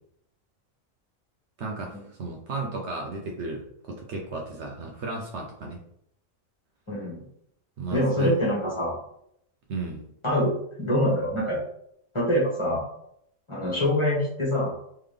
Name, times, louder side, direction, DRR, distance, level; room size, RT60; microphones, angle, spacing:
voice 1, 1.6-5.8 7.8-8.4 9.7-10.1, right 3 dB, 65° right, 0 dB, 0.9 m, -34 dB
voice 2, 6.9-7.2 7.9-8.9 10.2-11.6 12.1-12.8 13.5-14.7, equal, 20° left, -6 dB, 1.4 m, -25 dB
3.7 x 3.3 x 3.3 m, 0.72 s
omnidirectional pair, 1.4 m